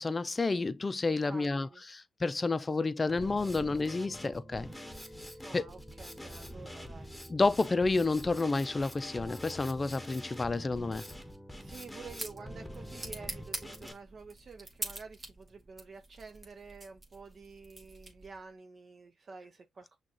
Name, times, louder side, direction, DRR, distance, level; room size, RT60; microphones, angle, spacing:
voice 1, 0.0-4.7 5.5-5.7 7.3-11.0, left 3 dB, 30° left, 0.4 m, -30 dB
voice 2, 1.2-1.8 5.4-7.1 11.6-20.0, right 4 dB, 50° right, 0.6 m, -49 dB
Drum kit, 3.1-13.9, equal, ahead, 1.1 m, -45 dB
sound 1, 11.6-18.5, right 1 dB, 35° right, 1.6 m, -45 dB
6.1 x 2.3 x 2.8 m
supercardioid pair, 55°, 0 cm